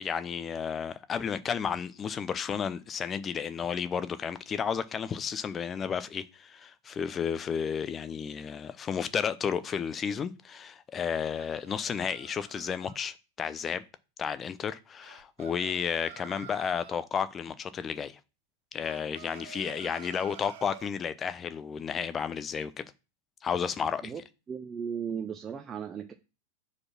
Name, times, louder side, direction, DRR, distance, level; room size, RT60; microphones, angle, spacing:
voice 1, 0.0-13.8 14.2-18.2 18.7-22.8 23.4-24.1, left 7 dB, 25° left, 0.6 m, -32 dB
sound 1, 11.0-13.0 15.0-17.0 18.8-20.9, right 8 dB, 55° right, 0.9 m, -49 dB
voice 2, 24.5-26.1, right 7 dB, 20° right, 0.7 m, -36 dB
4.8 x 4.2 x 5.9 m
figure-of-eight pair, 90°, 0 cm